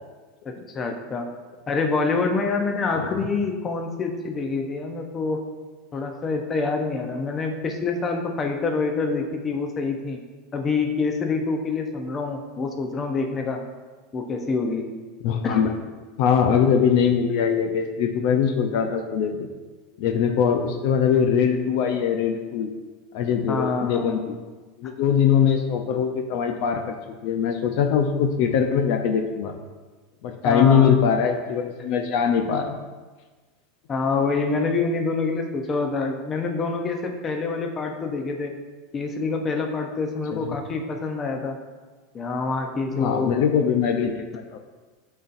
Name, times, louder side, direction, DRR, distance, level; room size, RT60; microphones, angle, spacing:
voice 1, 0.4-1.3 1.7-5.4 5.9-10.2 10.5-13.6 14.1-14.9 15.4-15.6 23.5-24.4 30.4-31.1 33.9-38.5 38.9-41.6 42.1-43.3, left 4 dB, 25° left, 4 dB, 0.7 m, -26 dB
voice 2, 15.2-15.7 16.2-19.5 20.0-22.7 23.1-24.3 24.8-27.0 27.2-29.5 30.2-32.8 40.3-40.6 42.9-44.6, left 7 dB, 60° left, 5 dB, 0.5 m, -22 dB
11.0 x 4.1 x 2.6 m, 1.3 s
supercardioid pair, 140°, 0 cm